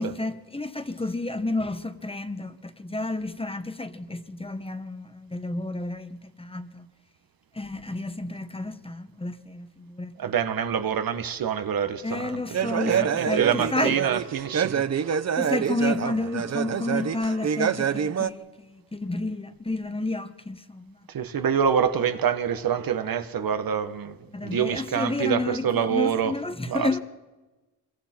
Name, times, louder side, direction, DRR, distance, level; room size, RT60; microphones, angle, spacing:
voice 1, 0.0-6.9 7.5-10.3 12.0-14.0 15.4-21.0 24.3-27.0, left 2 dB, 15° left, 1.2 m, -31 dB
voice 2, 10.2-15.1 21.1-26.3 26.7-26.9, right 8 dB, 65° right, 1.4 m, -26 dB
sound 1, 12.5-18.3, right 8 dB, 45° right, 0.8 m, -26 dB
26.0 x 23.0 x 4.5 m
cardioid pair, 100°, 37 cm